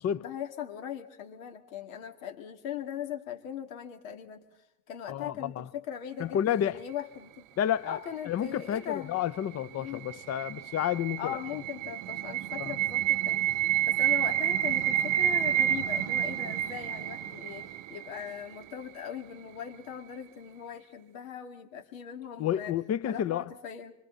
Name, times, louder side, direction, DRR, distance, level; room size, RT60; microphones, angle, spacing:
voice 1, 0.2-4.4 4.9-7.5 7.8-9.2 9.8-10.0 11.2-13.5 13.8-22.8 23.0-23.9, left 9 dB, 80° left, 2.4 m, -40 dB
voice 2, 5.1-5.6 6.2-6.8 7.6-8.0 8.2-11.4 12.6-12.8 22.4-23.5, left 10 dB, 40° left, 0.8 m, -30 dB
sound 1, 9.6-18.6, right 12 dB, 50° right, 0.8 m, -29 dB
26.5 x 25.0 x 4.1 m
hypercardioid pair, 85°, 40 cm